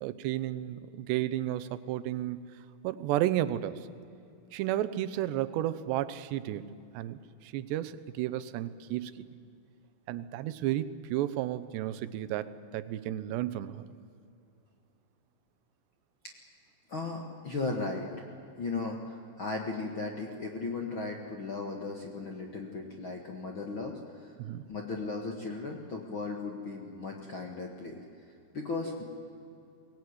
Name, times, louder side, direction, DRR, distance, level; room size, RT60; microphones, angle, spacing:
voice 1, 0.0-2.5 2.8-3.9 4.5-9.3 10.1-13.8 24.4-24.7, right 13 dB, 90° right, 14 dB, 3.0 m, -33 dB
voice 2, 16.9-18.2 18.6-24.3 24.7-28.0 28.5-29.0, left 3 dB, 50° left, 1 dB, 1.5 m, -36 dB
23.0 x 18.5 x 9.6 m, 2.6 s
omnidirectional pair, 4.8 m